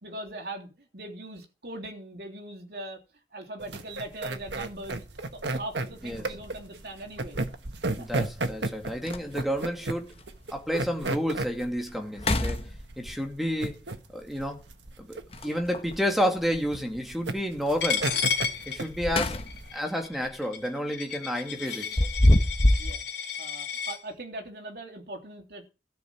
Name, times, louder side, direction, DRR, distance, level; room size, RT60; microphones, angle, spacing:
voice 1, 0.0-3.0 3.3-5.0 5.3-7.4 8.0-8.1 13.6-13.7 15.4-15.6 19.0-19.2 22.8-23.1 23.4-25.7, right 1 dB, 60° right, 3.3 m, -40 dB
sound 1, 3.6-19.7, right 2 dB, 85° right, 1.6 m, -34 dB
sound 2, 6.3-6.5 8.2-8.3 8.7-8.8 9.0-9.6 10.2-10.3 10.8-10.9 11.3-11.7 12.1-13.2 15.3-16.0 18.7-19.8 20.1-20.4 21.6-23.0, left 1 dB, 35° left, 1.2 m, -25 dB
voice 2, 8.0-10.1 10.5-12.7 13.0-13.8 14.1-14.6 15.0-18.1 18.7-19.4 19.7-22.0, equal, ahead, 2.4 m, -30 dB
Coin (dropping), 17.8-24.0, left 7 dB, 80° left, 3.5 m, -32 dB
13.5 x 6.4 x 8.8 m
head